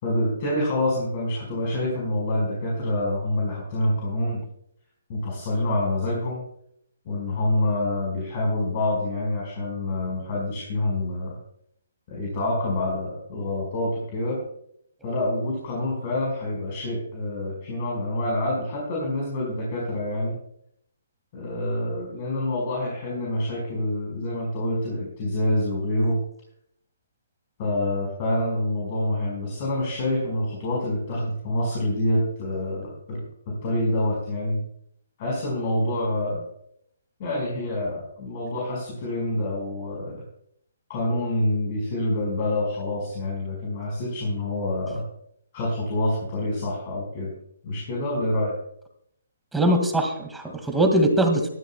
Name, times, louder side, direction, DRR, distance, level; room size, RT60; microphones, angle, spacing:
voice 1, 0.0-4.4 5.1-6.4 7.0-11.3 12.1-14.4 15.0-20.4 21.3-26.2 27.6-34.6 35.2-36.4 37.2-40.2 40.9-45.0 45.5-47.3 47.6-48.5, left 1 dB, 35° left, -3 dB, 5.0 m, -27 dB
voice 2, 49.5-51.5, right 1 dB, 5° right, 3 dB, 2.0 m, -21 dB
19.5 x 13.0 x 2.3 m, 0.71 s
figure-of-eight pair, 135°, 0 cm